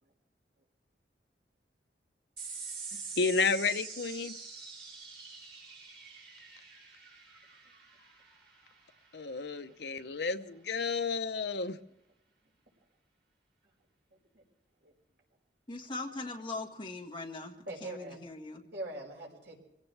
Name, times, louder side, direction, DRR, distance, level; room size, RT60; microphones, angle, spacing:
sound 1, 2.4-9.2, right 5 dB, 60° right, 5.5 m, -45 dB
voice 1, 3.2-4.3 9.1-11.8, left 4 dB, 70° left, 8 dB, 0.8 m, -31 dB
voice 2, 15.7-17.6 17.8-18.7, left 2 dB, 25° left, 0 dB, 1.8 m, -40 dB
voice 3, 17.7-18.2 18.7-19.6, right 1 dB, 85° right, -2 dB, 5.6 m, -42 dB
24.5 x 16.5 x 3.4 m, 0.85 s
head